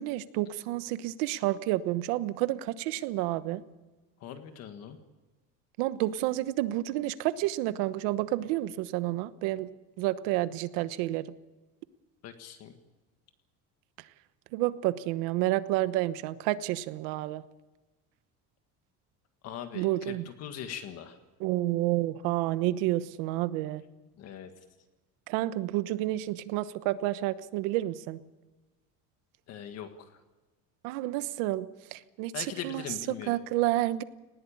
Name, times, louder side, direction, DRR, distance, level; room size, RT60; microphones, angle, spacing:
voice 1, 0.0-3.6 5.8-9.7 10.0-11.3 14.5-17.4 19.7-20.2 21.4-23.8 25.3-28.2 30.8-32.8 33.3-34.0, right 16 dB, 85° right, 14 dB, 1.1 m, -30 dB
voice 2, 4.2-5.0 12.2-12.7 19.4-21.2 24.2-24.5 29.5-30.2 32.3-33.4, left 9 dB, 45° left, 7 dB, 1.7 m, -41 dB
19.5 x 18.0 x 8.7 m, 1.2 s
cardioid pair, 175°, 35 cm